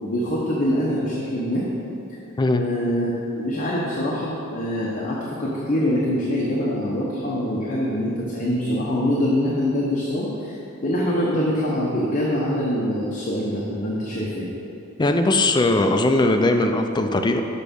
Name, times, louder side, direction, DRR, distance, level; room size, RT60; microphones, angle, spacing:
voice 1, 0.0-1.7 2.5-14.5, equal, 35° left, -5 dB, 0.9 m, -24 dB
voice 2, 15.0-17.4, left 2 dB, 20° left, 6 dB, 0.4 m, -19 dB
6.6 x 6.1 x 5.2 m, 2.9 s
head